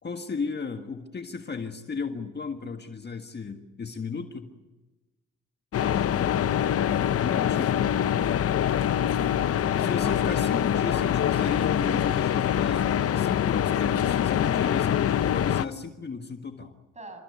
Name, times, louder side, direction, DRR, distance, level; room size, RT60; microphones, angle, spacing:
voice 1, 0.0-4.5 7.2-7.8 9.8-16.8, left 5 dB, 35° left, 6 dB, 1.6 m, -35 dB
sound 1, 5.7-15.7, left 10 dB, 50° left, 0.7 m, -24 dB
voice 2, 5.7-6.9 9.6-10.2 16.9-17.2, equal, 25° right, 7 dB, 6.8 m, -45 dB
29.5 x 14.5 x 9.7 m, 1.1 s
cardioid pair, 90°, 30 cm